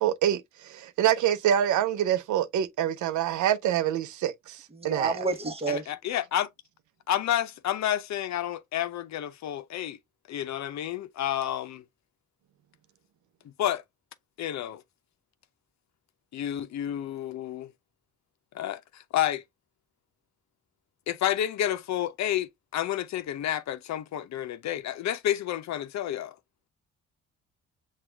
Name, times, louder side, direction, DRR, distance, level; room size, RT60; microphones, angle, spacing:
voice 1, 0.0-5.2, right 10 dB, 75° right, 0.6 m, -26 dB
voice 2, 4.8-5.8, right 3 dB, 20° right, 1.0 m, -29 dB
voice 3, 5.7-6.5 7.1-10.0 10.3-11.8 13.4-13.8 14.4-14.8 16.3-17.7 18.5-19.4 21.1-26.3, left 11 dB, 65° left, 0.6 m, -30 dB
6.0 x 2.4 x 3.3 m
cardioid pair, 90°, 30 cm